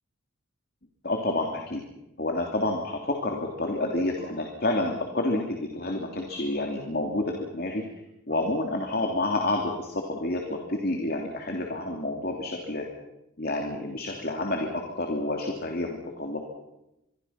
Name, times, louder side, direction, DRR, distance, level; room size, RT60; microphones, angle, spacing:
voice 1, 1.0-1.8 2.2-7.8 8.3-12.8 13.4-16.4, left 2 dB, 45° left, 2 dB, 3.1 m, -29 dB
27.0 x 23.0 x 5.9 m, 0.88 s
head